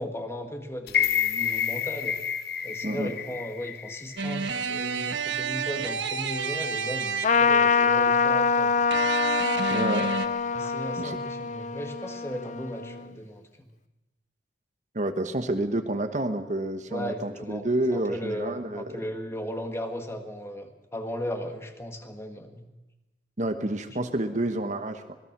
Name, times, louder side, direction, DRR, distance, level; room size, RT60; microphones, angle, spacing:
voice 1, 0.0-2.2 2.6-9.2 10.5-13.7 16.9-17.7 17.9-22.7, equal, 15° left, 5 dB, 1.7 m, -36 dB
sound 1, 0.9-5.0 5.4-5.5, left 9 dB, 60° left, 1.1 m, -29 dB
sound 2, 4.2-7.7 8.9-10.3, right 5 dB, 85° right, 1.2 m, -30 dB
Trumpet, 7.2-13.1, left 5 dB, 45° left, 0.6 m, -25 dB
voice 2, 9.7-10.2 11.0-11.2 14.9-18.8 23.4-25.2, right 1 dB, 45° right, 7 dB, 1.3 m, -29 dB
26.0 x 19.5 x 6.1 m, 1.0 s
head